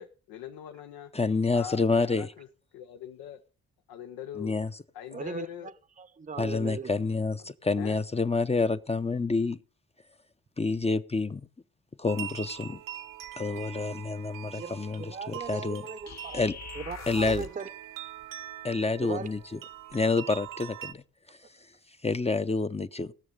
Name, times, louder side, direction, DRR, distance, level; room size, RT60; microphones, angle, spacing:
voice 1, 0.0-1.1 1.5-2.5 2.7-3.4 3.9-4.5 4.9-5.7 6.3-6.6 7.4-7.5 7.8-8.0, left 9 dB, 85° left, 0.8 m, -42 dB
voice 2, 1.1-2.3 4.4-4.7 6.4-9.6 10.6-11.4 12.0-12.8 13.4-15.8 16.3-16.5 17.1-17.5 18.6-19.6 19.9-21.0 22.0-23.1, left 3 dB, 20° left, 0.6 m, -28 dB
voice 3, 5.1-5.7 6.0-6.9 14.6-16.4 16.7-17.7 19.0-19.3, right 5 dB, 25° right, 0.7 m, -39 dB
sound 1, 12.1-20.9, right 12 dB, 70° right, 0.9 m, -43 dB
sound 2, 16.1-17.7, left 6 dB, 50° left, 0.9 m, -42 dB
17.5 x 6.3 x 5.2 m
supercardioid pair, 50°, 34 cm